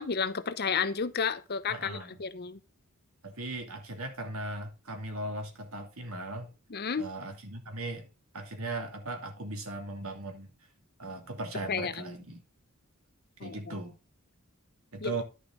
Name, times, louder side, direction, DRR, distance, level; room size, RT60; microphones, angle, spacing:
voice 1, 0.0-2.6 6.7-7.0 11.7-11.9 13.4-13.6 15.0-15.1, left 5 dB, 45° left, 0.7 m, -31 dB
voice 2, 1.7-2.2 3.2-6.5 7.0-8.1 8.3-10.5 11.0-12.4 13.4-14.0 14.9-15.2, right 2 dB, 70° right, 2.7 m, -38 dB
11.0 x 6.6 x 3.7 m
head